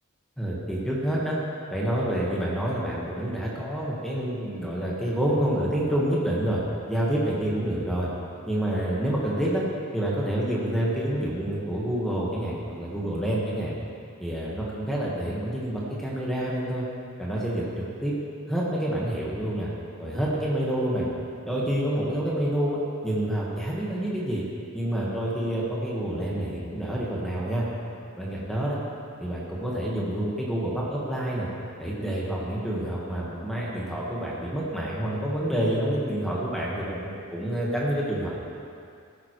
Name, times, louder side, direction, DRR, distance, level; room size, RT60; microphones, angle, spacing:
voice 1, 0.4-1.4 1.7-6.6 6.9-8.1 8.5-9.6 9.9-13.7 14.2-16.8 17.2-18.1 18.5-19.7 20.0-21.1 21.4-24.4 24.7-27.6 28.2-28.8 29.2-31.5 31.8-38.3, right 1 dB, ahead, -6 dB, 1.4 m, -28 dB
16.0 x 8.8 x 3.1 m, 2.4 s
head